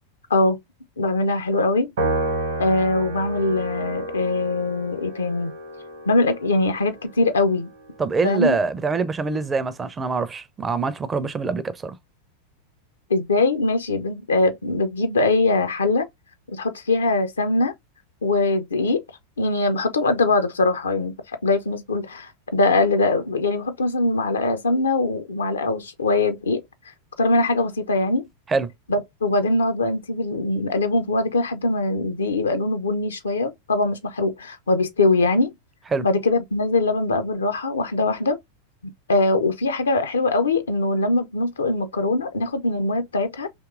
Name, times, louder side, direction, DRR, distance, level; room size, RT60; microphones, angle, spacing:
voice 1, 1.0-1.9 2.6-5.5 6.1-7.7 8.2-8.6 13.1-16.1 16.5-17.7 18.2-19.0 19.4-21.1 21.4-26.6 27.2-28.3 28.9-35.5 36.0-38.4 39.1-43.5, left 2 dB, 70° left, 0.5 m, -22 dB
Piano, 2.0-8.5, right 2 dB, 60° right, 0.8 m, -31 dB
voice 2, 8.0-11.9 28.5-28.7 35.9-36.1, right 4 dB, 15° right, 0.4 m, -24 dB
3.5 x 2.8 x 2.4 m
figure-of-eight pair, 90°, 0 cm